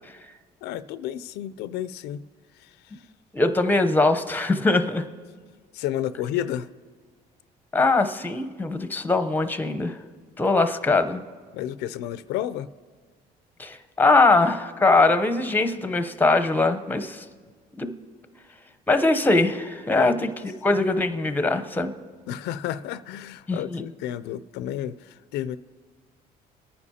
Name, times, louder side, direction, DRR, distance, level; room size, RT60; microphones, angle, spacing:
voice 1, 0.6-2.2 2.6-3.0 5.7-6.7 11.5-12.7 20.0-20.3 22.3-25.6, left 11 dB, 85° left, 0.4 m, -31 dB
voice 2, 3.3-5.0 7.7-10.0 10.4-11.2 13.6-17.3 17.8-17.9 18.9-20.3 20.6-21.9 23.5-23.8, left 3 dB, 10° left, 0.7 m, -21 dB
27.0 x 9.6 x 2.8 m
cardioid pair, 110°, 17 cm